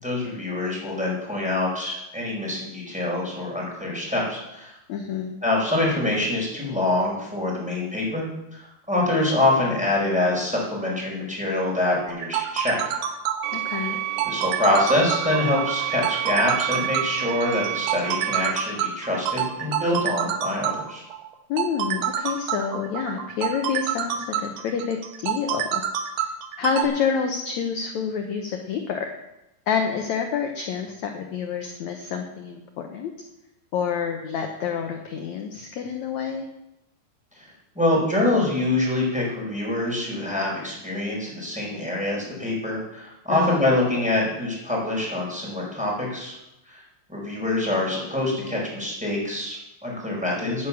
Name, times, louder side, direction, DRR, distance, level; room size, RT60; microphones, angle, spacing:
voice 1, 0.0-4.7 5.4-12.8 14.2-21.0 37.4-37.5 37.7-46.4 46.7-46.8 47.1-50.7, left 1 dB, ahead, -4 dB, 4.2 m, -25 dB
voice 2, 4.9-5.3 13.5-14.0 21.5-25.8 26.6-29.1 29.7-33.1 33.7-36.5 43.3-43.6, left 7 dB, 85° left, 4 dB, 1.6 m, -28 dB
sound 1, 12.1-26.8, right 10 dB, 70° right, 2.0 m, -28 dB
sound 2, 13.4-18.5, right 15 dB, 90° right, 2.7 m, -30 dB
10.0 x 9.5 x 7.2 m, 0.91 s
omnidirectional pair, 4.6 m